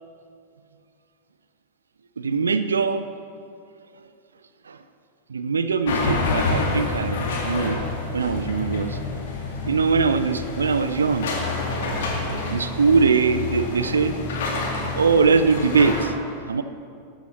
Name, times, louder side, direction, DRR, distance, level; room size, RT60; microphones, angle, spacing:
voice 1, 2.2-3.1 4.7-4.8 5.3-7.8 8.1-9.0 9.6-11.4 12.5-14.2 14.9-16.1 16.5-16.6, right 5 dB, 70° right, 11 dB, 0.5 m, -21 dB
sound 1, 5.9-16.0, left 3 dB, 60° left, 2.2 m, -28 dB
12.5 x 9.0 x 6.3 m, 2.4 s
figure-of-eight pair, 90°, 0 cm